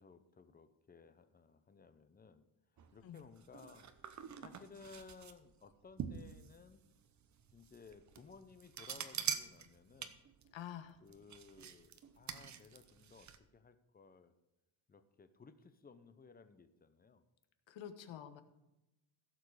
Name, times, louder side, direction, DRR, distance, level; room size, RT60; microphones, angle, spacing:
voice 1, 0.0-2.4 2.9-3.9 4.4-6.8 7.5-10.2 11.0-14.3 14.9-17.2, left 5 dB, 20° left, 11 dB, 0.6 m, -59 dB
sound 1, 2.8-13.4, right 8 dB, 35° right, 0.7 m, -46 dB
voice 2, 10.5-11.0 17.7-18.4, left 10 dB, 65° left, 9 dB, 1.3 m, -48 dB
16.0 x 7.2 x 4.8 m, 0.95 s
cardioid pair, 170°, 48 cm